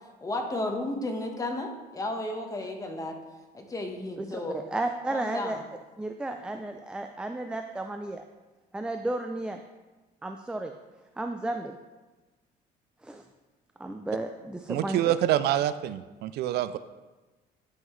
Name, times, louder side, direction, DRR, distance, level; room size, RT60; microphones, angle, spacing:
voice 1, 0.2-3.2 3.5-4.6 5.1-5.6, left 2 dB, 20° left, 3 dB, 1.2 m, -33 dB
voice 2, 4.2-5.6 6.0-8.2 8.7-9.6 10.2-10.7 11.2-11.8 13.0-13.3 13.8-15.1, right 2 dB, 5° right, 5 dB, 0.4 m, -33 dB
voice 3, 14.7-16.8, right 12 dB, 75° right, 13 dB, 0.4 m, -26 dB
11.0 x 5.7 x 3.1 m, 1.2 s
cardioid pair, 110°, 17 cm